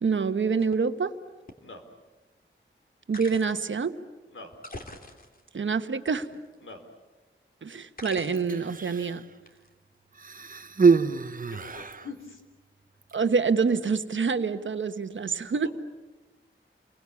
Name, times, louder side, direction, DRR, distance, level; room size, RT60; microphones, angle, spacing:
voice 1, 0.0-1.1 3.1-4.0 5.5-6.3 7.6-9.2 13.1-15.7, right 5 dB, 70° right, 9 dB, 1.3 m, -26 dB
sound 1, 0.6-0.7 1.5-1.6 3.1-3.7 4.5-5.5 6.1-6.7 8.0-8.6 9.5-9.7, left 2 dB, 45° left, 2.9 m, -44 dB
Human voice, 8.4-9.3 10.2-12.1 13.0-13.2, right 5 dB, 45° right, 0.9 m, -25 dB
voice 2, 11.5-12.4, left 4 dB, 75° left, 5 dB, 4.1 m, -43 dB
30.0 x 23.0 x 8.5 m, 1.2 s
wide cardioid pair, 115°, 21 cm